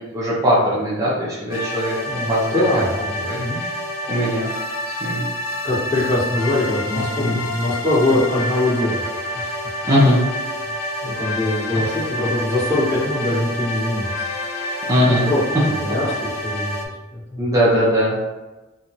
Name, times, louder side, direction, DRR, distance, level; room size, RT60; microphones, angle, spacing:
voice 1, 0.1-1.9 2.3-2.5 2.7-2.8 3.2-3.4 4.1-4.5 5.0-5.2 7.2-7.4 9.8-10.2 14.9-15.3 17.4-18.1, equal, 15° right, -8 dB, 0.5 m, -19 dB
sound 1, 1.5-16.9, left 1 dB, 85° left, 0.4 m, -28 dB
voice 2, 2.0-3.6 4.1-4.2 5.6-9.0 9.3-9.5 10.6-10.7 11.0-14.3 15.3-16.7 17.1-17.4, left 1 dB, 35° left, -10 dB, 1.3 m, -22 dB
2.8 x 2.3 x 2.7 m, 1.1 s
head